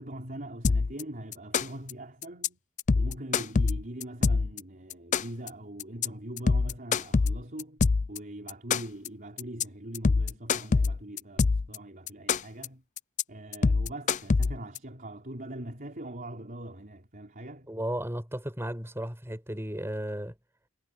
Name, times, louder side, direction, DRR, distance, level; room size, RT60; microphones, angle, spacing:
voice 1, 0.0-2.6 2.9-12.8 13.3-17.7, right 1 dB, 40° right, 4.2 m, -42 dB
sound 1, 0.6-1.0 1.3-1.9 2.2-2.5 2.8-4.6 4.9-5.5 5.8-6.1 6.4-8.2 8.5-9.1 9.4-9.6 9.9-11.8 12.1-12.7 13.0-13.2 13.5-14.8, left 4 dB, 35° left, 0.4 m, -24 dB
voice 2, 17.7-20.3, right 1 dB, 10° right, 5.6 m, -34 dB
head